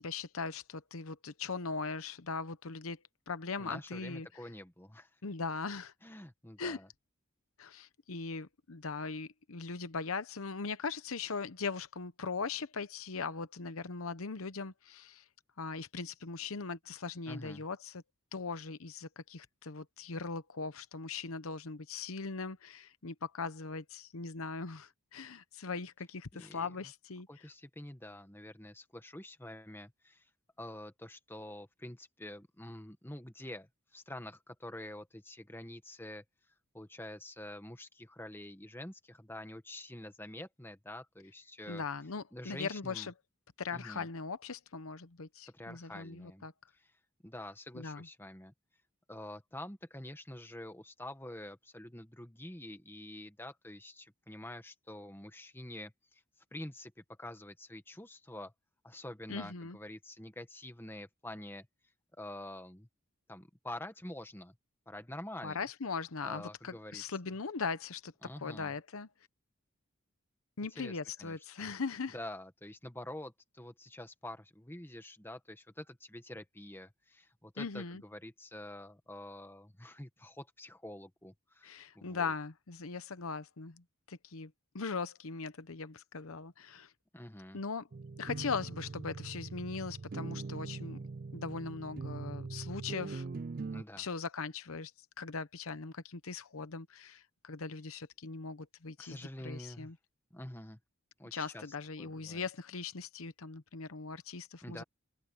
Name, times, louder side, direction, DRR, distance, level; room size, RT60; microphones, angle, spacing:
voice 1, 0.0-4.3 5.2-5.9 6.6-6.8 7.6-15.2 15.6-18.0 18.3-27.5 41.7-43.1 43.6-46.5 47.7-48.1 59.3-59.8 65.4-68.1 68.4-69.1 70.6-72.2 77.6-78.0 81.6-86.9 87.5-87.9 88.2-91.0 91.3-93.3 94.0-94.9 95.2-99.2 99.4-100.0 101.3-104.8, left 4 dB, 75° left, 0.9 m, -40 dB
voice 2, 3.6-5.1 6.0-6.9 17.3-17.6 26.3-26.7 27.3-30.3 30.6-36.2 36.7-41.8 42.3-43.1 43.7-44.1 45.5-46.5 46.8-46.9 47.2-48.5 49.1-56.2 56.5-58.5 58.8-61.7 62.1-62.9 63.3-64.6 64.9-65.6 66.2-67.0 68.2-68.7 70.8-71.7 72.1-82.3 87.1-87.6 93.7-94.0 99.0-99.9 100.3-100.8 101.2-101.6 102.0-102.4 104.6-104.8, left 1 dB, 10° left, 1.5 m, -47 dB
sound 1, 87.9-93.8, right 3 dB, 40° right, 0.4 m, -42 dB
open air
head